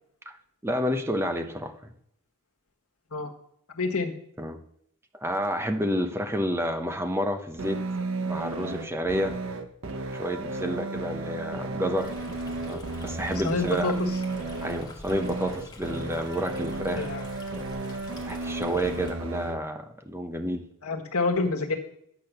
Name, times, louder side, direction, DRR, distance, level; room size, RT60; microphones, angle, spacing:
voice 1, 0.6-1.7 4.4-4.6 5.2-7.8 8.2-9.4 10.1-12.1 12.6-13.9 14.6-17.1 18.3-20.6, equal, 10° right, 6 dB, 0.8 m, -29 dB
voice 2, 3.7-4.1 13.4-14.1 16.9-17.2 20.8-21.8, left 3 dB, 80° left, 3 dB, 1.5 m, -27 dB
sound 1, 7.6-19.6, right 3 dB, 60° right, 1.0 m, -33 dB
Stream, 12.0-19.1, left 2 dB, 20° left, 1.3 m, -45 dB
10.5 x 6.2 x 6.7 m, 0.72 s
head